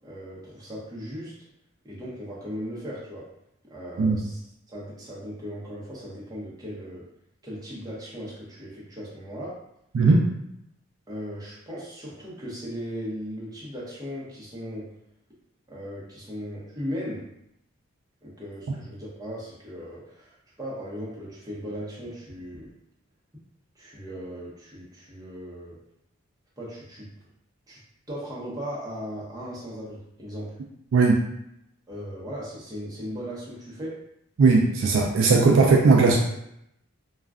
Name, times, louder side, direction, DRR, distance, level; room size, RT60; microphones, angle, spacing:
voice 1, 0.0-1.4 1.8-3.3 3.6-4.4 4.7-7.1 7.4-9.6 11.1-14.9 15.7-17.3 18.2-22.7 23.8-25.8 26.6-27.1 27.7-27.8 28.1-30.5 31.9-34.0, equal, 15° right, -6 dB, 0.7 m, -37 dB
voice 2, 9.9-10.3 30.9-31.2 34.4-36.2, right 4 dB, 60° right, 0 dB, 0.3 m, -18 dB
2.3 x 2.1 x 3.5 m, 0.78 s
head